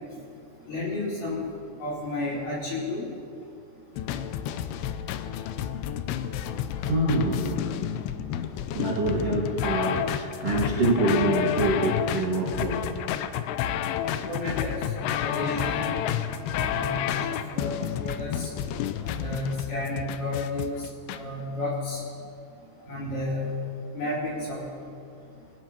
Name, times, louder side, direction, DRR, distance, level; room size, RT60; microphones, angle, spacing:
voice 1, 0.7-1.5 1.8-3.1 14.0-14.9 15.1-15.9 16.5-18.5 19.0-22.0 22.9-23.6 23.9-24.7, left 2 dB, 50° left, -7 dB, 5.4 m, -32 dB
sound 1, 4.0-21.2, left 10 dB, 80° left, 2.6 m, -30 dB
voice 2, 6.8-7.5 8.7-12.8, right 2 dB, 50° right, -6 dB, 2.2 m, -25 dB
24.0 x 17.0 x 2.9 m, 2.4 s
omnidirectional pair, 4.9 m